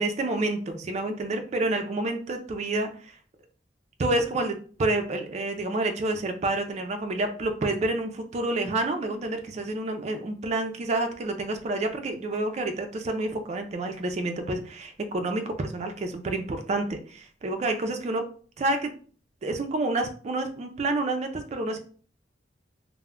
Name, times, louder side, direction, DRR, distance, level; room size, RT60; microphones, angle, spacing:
voice 1, 0.0-3.2 4.0-18.3 18.6-18.9 19.4-21.8, right 2 dB, 40° right, 6 dB, 0.4 m, -29 dB
2.2 x 2.0 x 3.5 m, 0.43 s
head